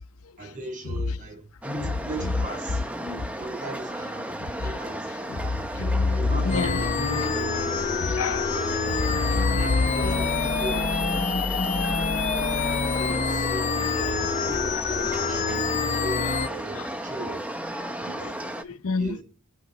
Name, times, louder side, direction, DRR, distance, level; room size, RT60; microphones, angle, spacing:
voice 1, 0.4-5.1 5.7-8.1 8.5-8.9 9.2-10.9 12.3-13.8 14.5-17.4 18.0-18.3 19.0-19.2, right 1 dB, 35° right, 7.1 m, -38 dB
sound 1, 1.6-18.6, right 1 dB, 5° right, 0.8 m, -34 dB
voice 2, 5.3-6.8 8.0-8.5 9.1-9.6 10.0-10.1 14.0-14.3 16.7-16.9 18.1-19.2, left 3 dB, 85° left, 0.7 m, -27 dB
sound 2, 6.5-16.5, left 5 dB, 35° left, 0.5 m, -26 dB
23.5 x 8.3 x 4.1 m
head